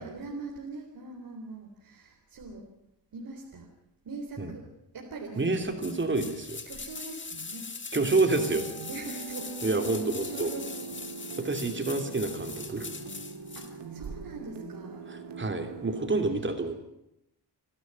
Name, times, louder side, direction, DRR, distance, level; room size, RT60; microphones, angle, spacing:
voice 1, 0.0-2.7 3.1-3.7 4.0-5.7 6.6-7.7 8.4-11.5 11.7-12.2 13.6-15.1 16.3-16.8, right 3 dB, 55° right, 1 dB, 3.7 m, -43 dB
voice 2, 5.4-6.6 7.9-8.6 9.6-10.5 11.4-13.0 15.1-16.8, right 3 dB, 25° right, 6 dB, 3.0 m, -28 dB
sound 1, 5.8-13.7 14.0-14.1, left 4 dB, 25° left, 1.8 m, -41 dB
sound 2, 8.3-16.1, right 5 dB, 75° right, 2.9 m, -42 dB
28.0 x 12.0 x 9.6 m, 0.85 s
wide cardioid pair, 130°, 42 cm